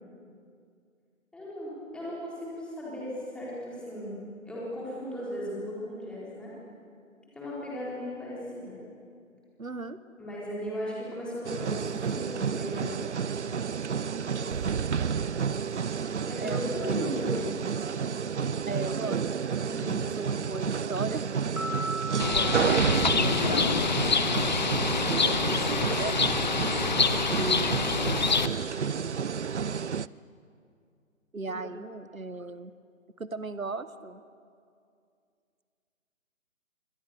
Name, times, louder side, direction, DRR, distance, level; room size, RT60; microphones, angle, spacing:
voice 1, 1.3-6.5 7.3-8.8 10.2-13.0 14.1-14.7 16.3-17.5 19.6-20.0 26.7-27.2, equal, ahead, -7 dB, 4.1 m, -37 dB
voice 2, 9.6-10.0 16.4-17.6 18.6-19.2 20.2-21.2 22.2-24.0 25.2-26.2 27.2-27.8 31.3-32.7 33.2-34.2, right 3 dB, 85° right, 14 dB, 1.3 m, -37 dB
sound 1, 11.4-30.1, right 6 dB, 60° right, 0.6 m, -30 dB
Piano, 21.6-24.1, right 1 dB, 75° left, 7.3 m, -38 dB
Bird, 22.2-28.5, left 5 dB, 35° left, 0.8 m, -26 dB
28.0 x 24.5 x 6.6 m, 2.3 s
figure-of-eight pair, 150°, 40 cm